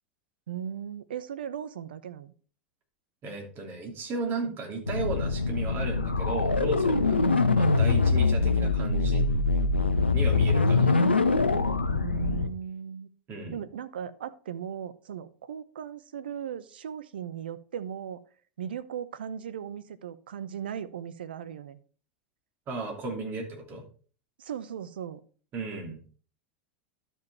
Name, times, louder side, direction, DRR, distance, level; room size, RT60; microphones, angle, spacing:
voice 1, 0.5-2.3 7.1-7.4 11.9-13.1 13.5-18.2 18.6-21.8 24.4-25.2, right 8 dB, 70° right, 14 dB, 0.8 m, -37 dB
voice 2, 3.2-7.2 7.5-9.3 10.1-11.0 13.3-13.6 22.7-23.8 25.5-26.1, right 3 dB, 35° right, 2 dB, 3.0 m, -35 dB
sound 1, 4.9-12.5, left 3 dB, 90° left, 0.7 m, -24 dB
11.5 x 5.5 x 4.3 m, 0.41 s
figure-of-eight pair, 90°, 6 cm